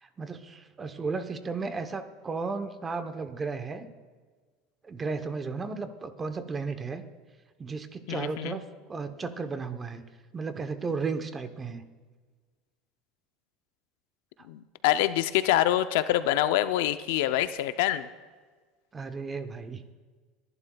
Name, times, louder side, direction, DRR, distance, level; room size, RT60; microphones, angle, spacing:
voice 1, 0.0-3.9 4.8-7.0 7.6-8.6 8.9-10.0 10.3-11.8 18.9-19.8, right 4 dB, 20° right, 9 dB, 0.9 m, -34 dB
voice 2, 8.1-8.6 14.5-18.1, left 13 dB, 80° left, 11 dB, 0.5 m, -26 dB
29.5 x 11.0 x 2.3 m, 1.5 s
supercardioid pair, 135°, 0 cm